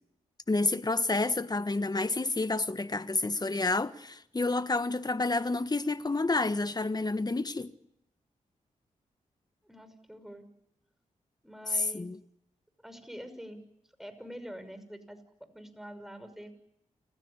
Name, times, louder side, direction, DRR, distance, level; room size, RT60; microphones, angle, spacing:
voice 1, 0.5-7.7 11.9-12.2, left 3 dB, 30° left, 1.5 m, -29 dB
voice 2, 9.6-10.5 11.4-12.1 12.8-13.6 14.0-15.2 15.5-16.5, equal, 5° right, 6.0 m, -45 dB
29.5 x 16.0 x 9.9 m
cardioid pair, 55°, 14 cm